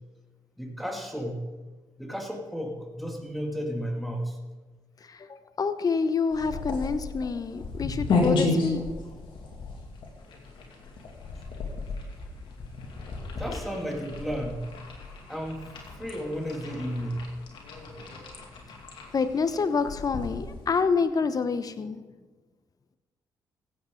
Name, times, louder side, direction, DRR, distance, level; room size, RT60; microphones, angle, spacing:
voice 1, 0.6-1.5 2.0-4.4 12.9-13.1 13.4-14.6 15.3-15.7 16.0-17.3 17.9-18.0, equal, ahead, 1 dB, 2.4 m, -33 dB
voice 2, 5.1-8.8 19.1-22.0, left 5 dB, 45° left, 11 dB, 1.0 m, -27 dB
sound 1, 6.3-20.8, left 3 dB, 65° left, 2.4 m, -33 dB
16.0 x 8.2 x 3.9 m, 1.3 s
supercardioid pair, 55°, 9 cm